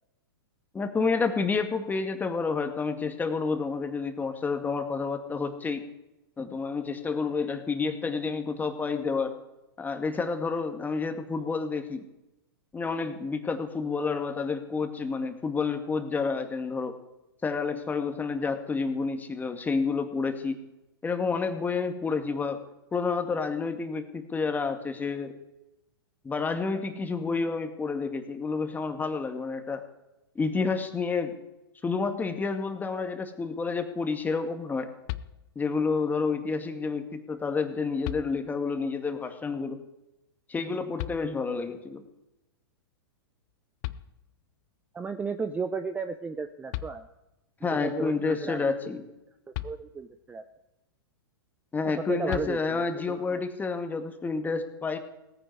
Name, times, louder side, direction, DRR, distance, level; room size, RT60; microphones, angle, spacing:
voice 1, 0.7-5.8 6.4-9.4 9.8-12.1 12.7-17.0 17.4-20.6 21.0-22.6 22.9-25.4 26.2-29.8 30.4-31.4 31.8-34.9 35.6-39.8 40.5-42.0 47.6-49.0 51.7-55.0, left 4 dB, 15° left, 6 dB, 1.9 m, -29 dB
sound 1, 35.1-35.8 37.3-37.4 38.0-38.8 41.0-41.7 43.5-43.6 43.8-44.7 46.4-46.5 46.7-47.5 49.5-50.3 52.3-53.1, left 16 dB, 45° left, 0.8 m, -39 dB
voice 2, 44.9-47.1 47.7-48.7 49.6-50.4 51.8-53.4, right 5 dB, 10° right, 10 dB, 0.7 m, -34 dB
17.5 x 15.0 x 4.7 m, 0.94 s
hypercardioid pair, 110°, 13 cm